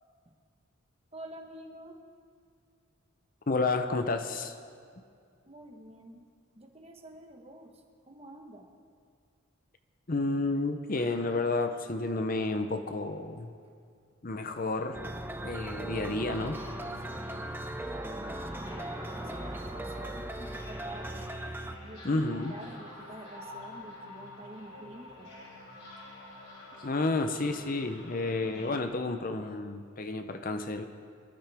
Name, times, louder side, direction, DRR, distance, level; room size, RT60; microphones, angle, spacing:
voice 1, 1.1-2.0 5.5-6.3 6.5-8.7 17.1-17.5 17.7-18.6 19.0-21.3 21.8-25.3, right 1 dB, 30° right, 3 dB, 1.3 m, -48 dB
voice 2, 3.5-4.5 10.1-13.5 14.2-15.0 15.4-16.6 22.0-22.5 26.8-30.8, left 2 dB, 40° left, 8 dB, 0.7 m, -31 dB
sound 1, 11.0-12.4 16.2-28.8, left 1 dB, 60° left, 3.8 m, -48 dB
sound 2, 14.9-21.8, right 1 dB, 10° right, 0.5 m, -38 dB
24.0 x 12.0 x 3.5 m, 2.3 s
head